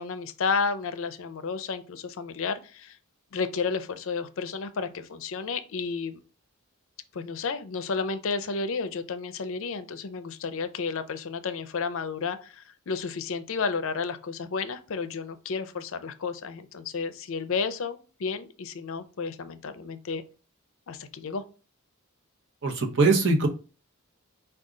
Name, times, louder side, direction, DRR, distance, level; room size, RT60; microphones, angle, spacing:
voice 1, 0.0-3.0 3.3-6.2 7.1-20.2 20.9-21.4, left 5 dB, 60° left, 0.5 m, -32 dB
voice 2, 22.6-23.5, right 3 dB, 55° right, 0.8 m, -22 dB
4.9 x 2.3 x 3.7 m
head